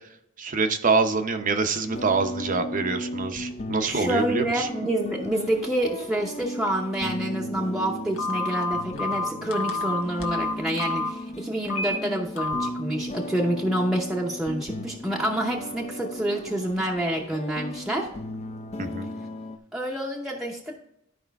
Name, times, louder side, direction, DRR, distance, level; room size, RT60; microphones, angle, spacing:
voice 1, 0.4-4.7 18.8-19.1, right 4 dB, 40° right, 7 dB, 0.7 m, -25 dB
sound 1, 1.9-19.6, equal, 35° left, 0.6 m, -36 dB
voice 2, 3.8-18.1 19.7-20.8, right 1 dB, ahead, -2 dB, 0.7 m, -28 dB
Telephone, 8.2-11.1 11.7-12.0 12.4-12.7, left 2 dB, 90° left, 1.3 m, -28 dB
12.5 x 5.0 x 3.4 m, 0.78 s
head